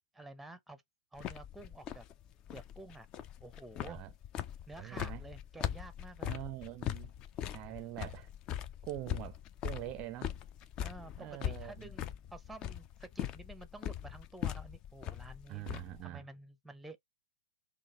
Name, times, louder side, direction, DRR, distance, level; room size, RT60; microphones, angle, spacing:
voice 1, 0.1-0.8 1.1-2.0 2.5-3.1 3.4-4.0 4.7-6.3 7.7-7.9 10.8-11.1 11.4-15.7 16.0-17.0, right 2 dB, 5° right, 0.7 m, -51 dB
sound 1, 1.2-16.0, left 10 dB, 30° left, 0.4 m, -41 dB
voice 2, 4.8-5.2 6.2-7.1 7.5-8.3 8.8-9.4 9.6-10.3 11.2-11.9 15.5-16.2, right 15 dB, 35° right, 0.4 m, -43 dB
3.9 x 2.4 x 3.0 m
hypercardioid pair, 110°, 2 cm